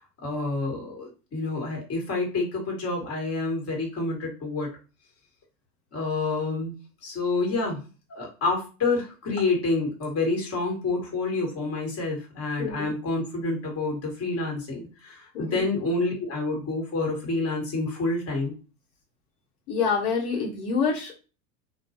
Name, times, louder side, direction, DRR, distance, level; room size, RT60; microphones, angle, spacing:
voice 1, 0.2-4.7 5.9-6.7 7.0-7.8 8.1-18.5, left 3 dB, 30° left, 0 dB, 1.3 m, -28 dB
voice 2, 12.6-12.9 15.3-15.6 19.7-21.2, left 5 dB, 75° left, -2 dB, 1.0 m, -27 dB
2.3 x 2.2 x 2.7 m, 0.33 s
hypercardioid pair, 105°, 45 cm